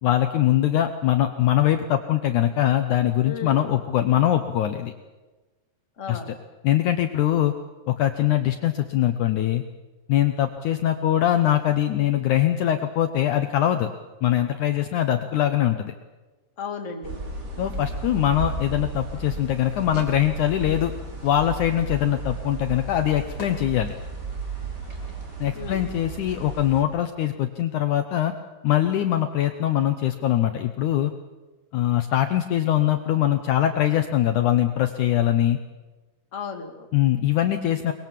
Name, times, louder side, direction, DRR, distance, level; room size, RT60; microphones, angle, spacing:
voice 1, 0.0-4.9 6.1-6.4 6.6-7.5 7.9-9.6 10.1-13.9 14.2-15.9 17.6-20.9 21.2-23.9 25.4-28.3 28.6-31.1 31.7-35.6 36.9-37.9, left 12 dB, 70° left, 7 dB, 2.1 m, -22 dB
voice 2, 3.2-3.7 6.0-6.4 16.6-17.2 25.5-25.9 36.3-36.9, left 5 dB, 25° left, 3 dB, 2.0 m, -34 dB
sound 1, 17.0-26.8, right 2 dB, 30° right, 3.2 m, -34 dB
Fire / Fireworks, 20.6-26.2, left 2 dB, 40° left, 5.7 m, -49 dB
23.5 x 21.0 x 7.5 m, 1.2 s
omnidirectional pair, 4.1 m